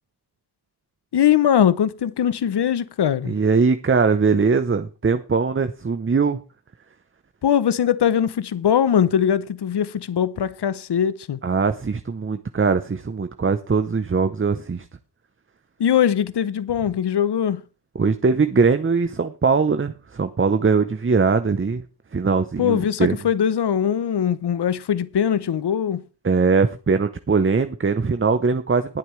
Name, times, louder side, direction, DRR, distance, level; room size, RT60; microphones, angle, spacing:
voice 1, 1.1-3.4 7.4-11.4 15.8-17.6 22.6-26.0, left 9 dB, 75° left, 0.7 m, -21 dB
voice 2, 3.3-6.4 11.4-14.9 17.9-21.8 22.1-23.2 26.2-29.0, right 4 dB, 30° right, 0.7 m, -21 dB
19.5 x 8.0 x 3.2 m
wide cardioid pair, 60°, 41 cm